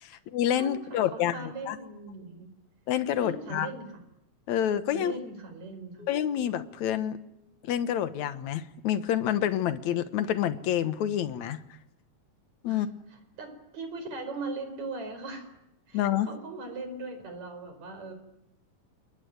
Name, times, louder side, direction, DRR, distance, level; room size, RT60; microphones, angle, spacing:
voice 1, 0.0-1.8 2.9-3.7 4.5-5.1 6.1-7.2 7.7-11.6 12.6-12.9 15.9-16.3, left 10 dB, 65° left, 12 dB, 2.3 m, -28 dB
voice 2, 0.6-2.5 3.2-4.0 4.9-6.1 12.7-12.9 13.1-15.5 15.9-18.1, right 3 dB, 55° right, 8 dB, 5.9 m, -39 dB
sound 1, 6.0-8.6, left 5 dB, 15° left, 5.0 m, -58 dB
27.5 x 21.5 x 9.5 m, 0.80 s
omnidirectional pair, 3.9 m